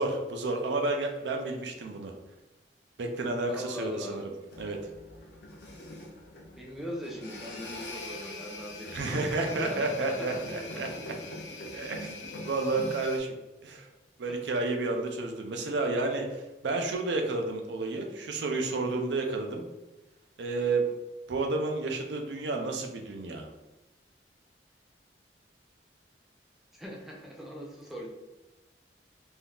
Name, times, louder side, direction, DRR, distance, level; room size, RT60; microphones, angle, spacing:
voice 1, 0.0-2.1 3.0-4.2 4.6-4.8 8.9-10.9 11.7-13.3 13.6-13.9 14.2-19.6 20.4-20.9 21.3-23.5, right 3 dB, 85° right, 3 dB, 0.5 m, -31 dB
voice 2, 3.5-4.3 6.6-10.9 14.2-14.4 26.8-28.1, equal, ahead, -2 dB, 0.5 m, -40 dB
sound 1, 4.5-13.2, left 2 dB, 75° left, 0.5 m, -43 dB
3.4 x 2.7 x 2.3 m, 1.1 s
head